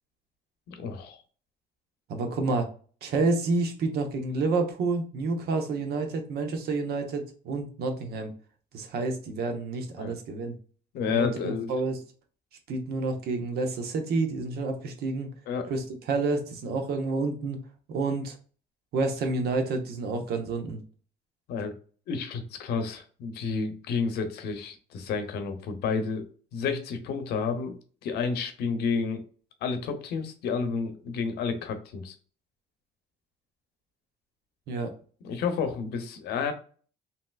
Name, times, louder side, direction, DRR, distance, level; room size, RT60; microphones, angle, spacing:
voice 1, 0.7-1.2 10.0-10.1 10.9-11.7 15.5-15.7 21.5-21.7 22.1-26.2 26.5-27.8 28.0-29.2 29.6-32.2 35.2-36.5, left 5 dB, 75° left, 8 dB, 0.7 m, -30 dB
voice 2, 2.1-2.7 3.0-8.3 8.7-10.5 11.1-12.0 12.7-15.3 15.7-17.6 17.9-18.4 18.9-20.8 34.7-34.9, right 3 dB, 70° right, 5 dB, 0.8 m, -29 dB
3.2 x 2.8 x 2.3 m, 0.41 s
cardioid pair, 110°, 17 cm